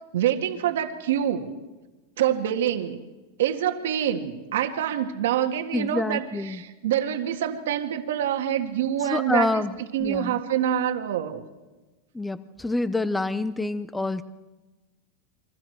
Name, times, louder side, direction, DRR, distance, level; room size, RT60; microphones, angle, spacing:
voice 1, 0.1-1.5 2.2-3.0 3.4-9.6 9.9-11.4, right 10 dB, 85° right, 5 dB, 1.9 m, -26 dB
voice 2, 5.7-6.6 9.1-9.7 10.0-10.4 12.1-14.2, left 2 dB, 5° left, 13 dB, 0.6 m, -27 dB
29.0 x 24.0 x 4.7 m, 1.2 s
supercardioid pair, 150°, 0 cm